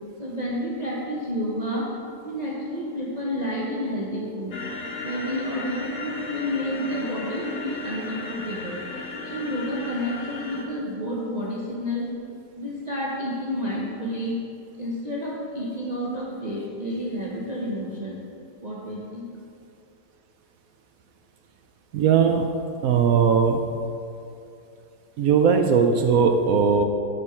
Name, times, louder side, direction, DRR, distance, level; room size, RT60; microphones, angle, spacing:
voice 1, 0.2-1.9 2.2-4.6 5.0-12.1 12.6-14.4 14.8-18.2 18.6-19.3, equal, 30° right, -6 dB, 1.0 m, -30 dB
sound 1, 4.5-10.6, left 2 dB, 65° left, 1.6 m, -35 dB
voice 2, 21.9-22.4 22.8-23.6 25.2-26.8, right 6 dB, 70° right, 5 dB, 0.8 m, -19 dB
11.0 x 6.2 x 4.4 m, 2.5 s
omnidirectional pair, 1.9 m